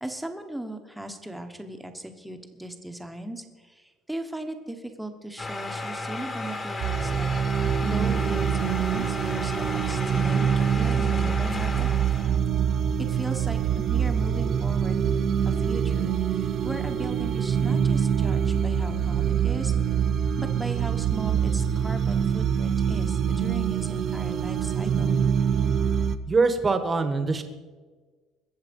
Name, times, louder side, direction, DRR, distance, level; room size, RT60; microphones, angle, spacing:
voice 1, 0.0-10.5 10.8-11.9 13.0-19.7 20.4-25.2, right 1 dB, 5° right, 6 dB, 1.2 m, -37 dB
sound 1, 5.4-12.4, left 2 dB, 20° left, 1.6 m, -34 dB
sound 2, 6.8-26.2, right 8 dB, 40° right, 0.6 m, -25 dB
voice 2, 26.3-27.4, right 4 dB, 20° right, 9 dB, 1.2 m, -23 dB
21.0 x 7.5 x 5.3 m, 1.4 s
cardioid pair, 150°, 0 cm